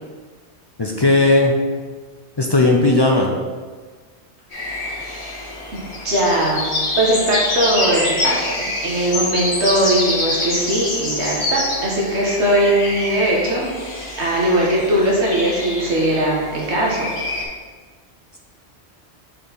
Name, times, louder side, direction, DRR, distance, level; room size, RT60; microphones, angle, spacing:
voice 1, 0.8-1.6 2.4-3.3, left 2 dB, 35° left, 0 dB, 0.4 m, -16 dB
sound 1, 4.5-17.4, left 2 dB, 70° left, 2.3 m, -26 dB
voice 2, 5.7-6.7 7.0-13.7 14.2-17.1, right 1 dB, 75° right, -4 dB, 1.6 m, -19 dB
6.2 x 4.5 x 3.9 m, 1.5 s
omnidirectional pair, 1.1 m